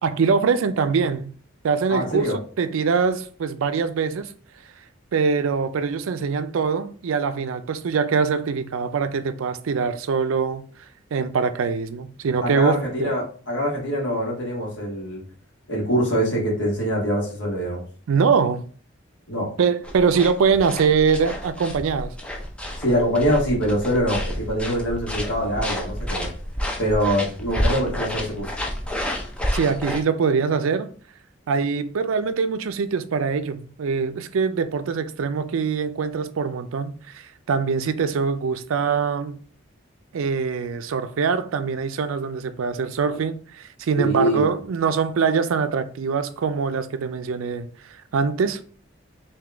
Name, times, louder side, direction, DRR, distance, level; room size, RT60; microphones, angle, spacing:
voice 1, 0.0-1.3 1.6-4.3 5.1-10.6 11.1-13.1 18.1-18.6 19.6-22.1 29.5-30.9 31.5-39.4 40.1-47.7 48.1-48.6, right 5 dB, 80° right, 0.4 m, -23 dB
voice 2, 1.9-2.4 12.4-15.2 15.7-17.8 19.3-19.5 22.8-26.3 26.8-28.5 44.0-44.4, equal, 60° left, 1.4 m, -24 dB
sound 1, 19.8-30.0, equal, 5° left, 0.4 m, -30 dB
3.7 x 2.7 x 3.4 m
head